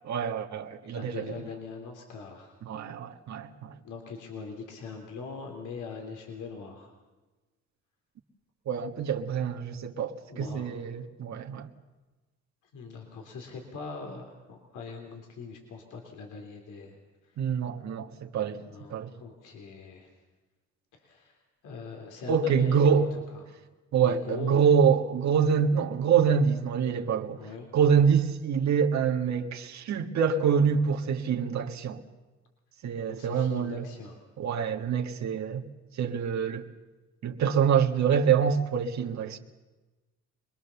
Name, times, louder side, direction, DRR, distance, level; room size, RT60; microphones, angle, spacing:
voice 1, 0.0-1.2 2.7-3.7 8.7-11.7 17.4-18.6 18.9-19.1 22.3-23.1 23.9-27.4 27.7-32.0 32.8-33.8 34.4-35.6 36.0-36.6 37.2-39.4, right 7 dB, 65° right, 1.7 m, -25 dB
voice 2, 0.8-2.6 3.8-6.9 10.3-10.7 12.7-17.0 17.2-17.5 18.5-20.1 20.9-21.4 21.6-23.0 23.3-23.4 24.0-24.6 27.4-27.7 33.1-34.2, left 4 dB, 80° left, 3.4 m, -42 dB
24.5 x 21.0 x 7.1 m
cardioid pair, 90°, 30 cm